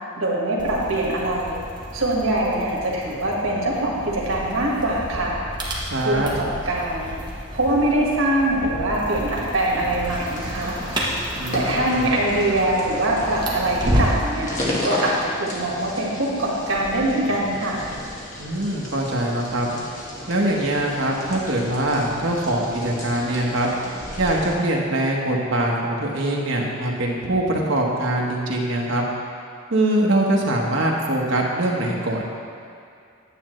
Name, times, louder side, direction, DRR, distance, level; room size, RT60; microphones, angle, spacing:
voice 1, 0.2-1.6 1.9-5.4 6.0-7.1 7.5-10.8 11.5-14.5 14.8-17.8, right 1 dB, 85° right, -3 dB, 1.6 m, -23 dB
sound 1, 0.6-14.3, equal, 20° right, 1.1 m, -31 dB
voice 2, 5.9-6.3 11.3-12.1 18.4-19.7 20.3-23.7 24.2-29.0 29.7-32.2, right 1 dB, 65° right, -2 dB, 1.1 m, -23 dB
sound 2, 10.0-24.6, left 1 dB, 40° left, 1.3 m, -34 dB
9.8 x 7.5 x 3.1 m, 2.4 s
head